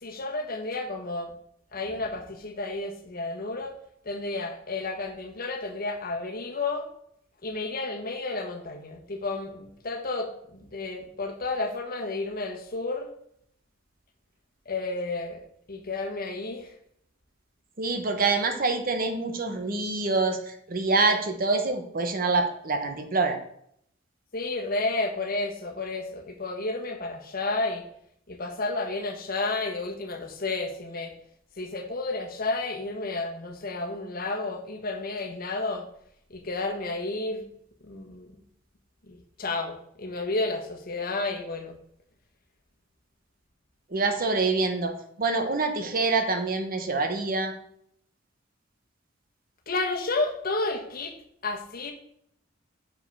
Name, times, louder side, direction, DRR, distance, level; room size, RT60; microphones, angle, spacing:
voice 1, 0.0-1.3 1.7-3.7 4.0-6.9 7.4-13.1 14.7-15.4 15.7-16.7 24.3-27.8 28.3-31.1 31.6-35.8 36.3-37.4 37.8-38.3 39.1-41.8 49.7-51.1 51.4-51.9, left 3 dB, 50° left, 4 dB, 1.2 m, -31 dB
voice 2, 17.8-23.4 43.9-47.6, right 3 dB, 45° right, 6 dB, 1.0 m, -26 dB
6.7 x 5.4 x 5.5 m, 0.69 s
head